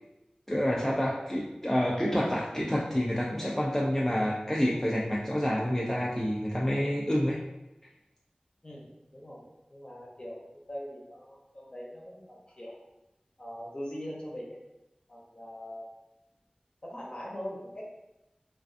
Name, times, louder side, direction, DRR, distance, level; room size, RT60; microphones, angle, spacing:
voice 1, 0.5-7.4, equal, 10° left, -4 dB, 0.3 m, -28 dB
voice 2, 9.1-12.8 13.4-14.6 15.1-15.9 16.8-17.9, equal, 40° left, -4 dB, 0.7 m, -42 dB
2.4 x 2.3 x 2.5 m, 0.97 s
wide cardioid pair, 45°, 3 cm